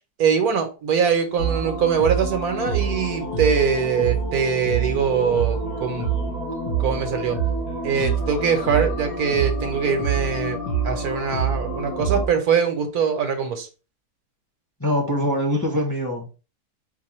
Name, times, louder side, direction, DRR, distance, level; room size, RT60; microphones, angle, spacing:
voice 1, 0.2-6.1 6.8-7.4 7.8-10.6 10.8-13.7, right 6 dB, 75° right, 1.4 m, -22 dB
sound 1, 1.4-12.3, right 5 dB, 75° left, 2.0 m, -26 dB
voice 2, 14.8-16.3, equal, 15° left, 0.8 m, -23 dB
4.6 x 2.3 x 4.2 m
omnidirectional pair, 1.7 m